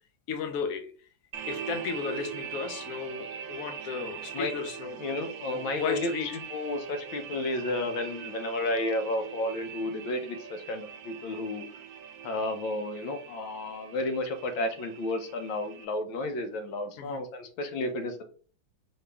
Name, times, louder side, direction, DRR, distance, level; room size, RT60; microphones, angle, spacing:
voice 1, 0.3-0.9 1.5-5.0 5.5-6.3 17.0-17.2, left 6 dB, 65° left, 7 dB, 0.9 m, -34 dB
sound 1, 1.3-15.9, right 8 dB, 90° right, 1.4 m, -42 dB
voice 2, 5.0-11.7 12.2-18.2, left 2 dB, 85° left, 7 dB, 1.5 m, -32 dB
4.2 x 3.1 x 3.3 m, 0.42 s
omnidirectional pair, 2.1 m